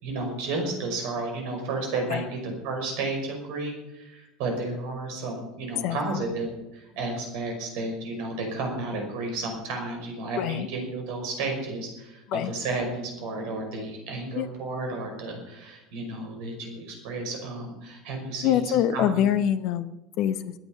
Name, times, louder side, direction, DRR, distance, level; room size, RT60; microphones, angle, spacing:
voice 1, 0.0-18.6 18.9-19.2, right 2 dB, 60° right, 2 dB, 5.4 m, -32 dB
voice 2, 5.8-6.2 10.4-10.7 12.3-12.5 14.4-14.5 18.4-20.5, left 10 dB, 55° left, 13 dB, 0.8 m, -25 dB
21.5 x 8.9 x 5.7 m, 0.98 s
figure-of-eight pair, 75°, 0 cm